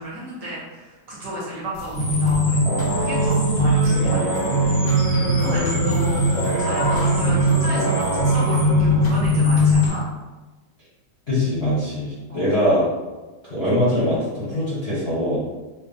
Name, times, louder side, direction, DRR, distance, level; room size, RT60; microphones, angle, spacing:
voice 1, 0.0-4.6 5.4-10.1 12.3-12.5, right 1 dB, 60° right, -7 dB, 1.3 m, -33 dB
sound 1, 1.7-10.1, left 1 dB, 65° left, 1.2 m, -37 dB
sound 2, 1.9-9.9, equal, 5° left, 0.7 m, -19 dB
voice 2, 5.4-5.9 11.3-12.8 13.5-15.4, left 1 dB, 40° left, -10 dB, 0.9 m, -22 dB
5.4 x 2.2 x 2.6 m, 1.2 s
omnidirectional pair, 2.4 m